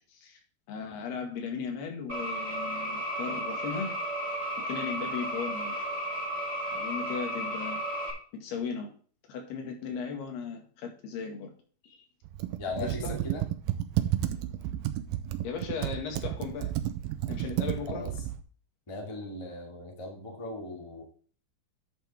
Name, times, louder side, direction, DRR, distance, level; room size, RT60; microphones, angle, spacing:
voice 1, 0.7-4.0 4.7-5.7 6.7-7.8 8.3-8.9 9.3-11.5 11.8-12.0 12.8-13.2 15.4-16.7 17.3-18.1, left 5 dB, 85° left, 3 dB, 4.0 m, -37 dB
sound 1, 2.1-8.1, right 1 dB, 10° right, 4.0 m, -33 dB
Computer keyboard, 12.3-18.4, right 13 dB, 80° right, 2.4 m, -32 dB
voice 2, 12.6-13.4 17.9-18.1 18.9-21.0, left 2 dB, 10° left, 1 dB, 1.5 m, -38 dB
11.5 x 7.3 x 3.6 m, 0.43 s
omnidirectional pair, 4.5 m